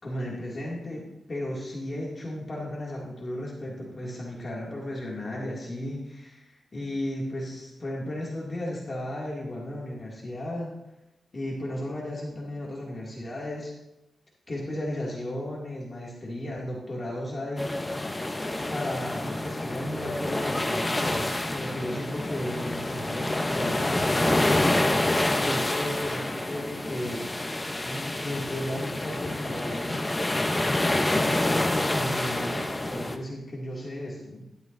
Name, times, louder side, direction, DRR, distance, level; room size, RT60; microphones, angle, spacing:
voice 1, 0.0-10.7 11.3-13.7 14.5-17.7 18.7-24.7 25.4-27.2 27.8-30.4 31.0-34.5, left 1 dB, 30° left, -4 dB, 2.4 m, -34 dB
sound 1, 17.6-33.2, left 1 dB, 15° left, 0.7 m, -27 dB
13.0 x 12.0 x 2.6 m, 0.93 s
wide cardioid pair, 145°, 0 cm